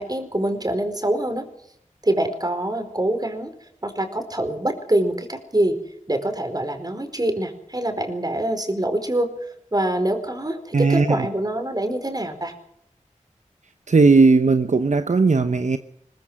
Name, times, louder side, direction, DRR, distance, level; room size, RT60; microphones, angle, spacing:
voice 1, 0.0-1.5 2.0-3.5 3.8-5.8 6.1-12.5, right 1 dB, 30° right, 7 dB, 4.5 m, -25 dB
voice 2, 10.7-11.3 13.9-15.8, right 4 dB, 65° right, 9 dB, 0.9 m, -17 dB
21.5 x 20.0 x 6.4 m, 0.73 s
wide cardioid pair, 50°, 13 cm